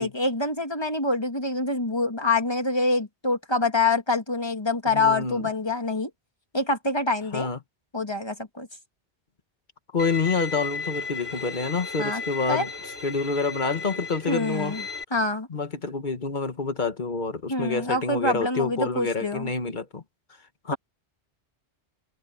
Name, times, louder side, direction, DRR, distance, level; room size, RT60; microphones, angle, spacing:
voice 1, 0.0-6.1 6.5-7.5 7.9-8.7 12.0-12.2 12.5-12.7 14.3-14.8 15.1-15.5 17.5-19.5, left 3 dB, 20° left, 2.2 m, -26 dB
voice 2, 4.9-5.4 7.3-7.6 9.9-12.7 13.0-14.8 15.5-20.0 20.6-20.8, left 4 dB, 45° left, 1.6 m, -27 dB
Bowed string instrument, 10.0-15.0, left 4 dB, 60° left, 7.2 m, -35 dB
omnidirectional pair, 1.2 m